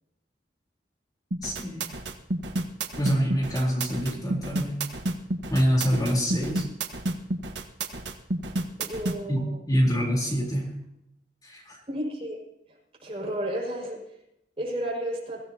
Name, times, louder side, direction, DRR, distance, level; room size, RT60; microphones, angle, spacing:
sound 1, 1.3-9.2, right 2 dB, 85° right, 1.5 m, -30 dB
voice 1, 1.4-1.9 3.0-4.8 5.5-6.6 9.3-10.7 11.4-11.8, equal, 25° left, -2 dB, 4.0 m, -26 dB
voice 2, 8.8-9.6 11.9-12.4 13.0-14.0 14.6-15.4, right 1 dB, 35° right, -3 dB, 6.1 m, -32 dB
23.5 x 16.0 x 2.9 m, 0.83 s
head